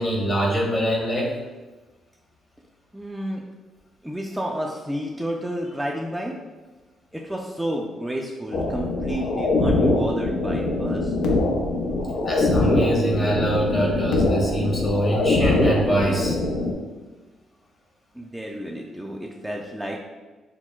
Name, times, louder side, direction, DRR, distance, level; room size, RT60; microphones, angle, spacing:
voice 1, 0.0-1.3 12.2-16.3, right 1 dB, 35° left, -2 dB, 1.1 m, -24 dB
voice 2, 2.9-3.4 4.0-6.3 7.1-11.2 18.1-20.0, equal, 5° right, -2 dB, 0.4 m, -31 dB
sound 1, 8.5-16.7, left 2 dB, 85° left, 0.5 m, -23 dB
5.9 x 2.1 x 2.3 m, 1.2 s
cardioid pair, 90°, 0 cm